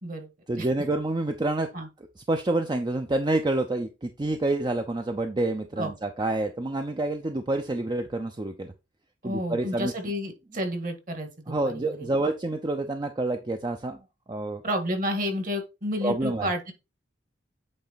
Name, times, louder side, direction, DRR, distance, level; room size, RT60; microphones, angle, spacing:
voice 1, 0.5-1.7 2.2-8.7 9.2-9.9 11.5-14.0 14.3-14.6 16.0-16.5, right 2 dB, 25° right, 0.5 m, -28 dB
voice 2, 9.2-12.1 14.6-16.7, equal, 45° right, 1.6 m, -31 dB
8.7 x 3.3 x 4.0 m
head